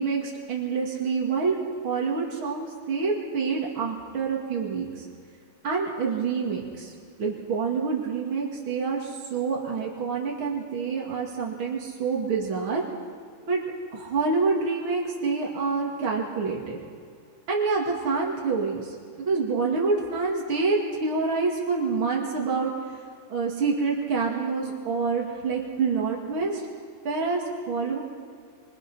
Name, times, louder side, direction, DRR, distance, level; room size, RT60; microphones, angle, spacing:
voice 1, 0.0-5.1 5.6-6.9 7.2-12.8 13.5-13.6 13.9-16.8 17.5-22.7 23.3-26.6 27.0-28.0, right 4 dB, 75° right, -2 dB, 3.2 m, -27 dB
25.5 x 23.5 x 5.7 m, 2.2 s
omnidirectional pair, 2.3 m